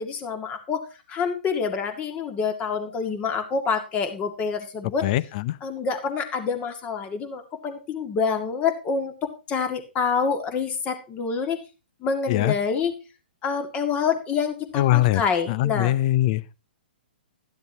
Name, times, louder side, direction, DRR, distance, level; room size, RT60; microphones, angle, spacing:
voice 1, 0.0-5.1 5.6-9.1 9.5-11.6 12.0-13.0 13.4-15.9, left 5 dB, 25° left, 2.1 m, -27 dB
voice 2, 5.0-5.6 12.3-12.5 14.7-15.2 15.5-16.5, left 15 dB, 40° left, 0.6 m, -22 dB
12.5 x 12.0 x 2.9 m
figure-of-eight pair, 120°, 6 cm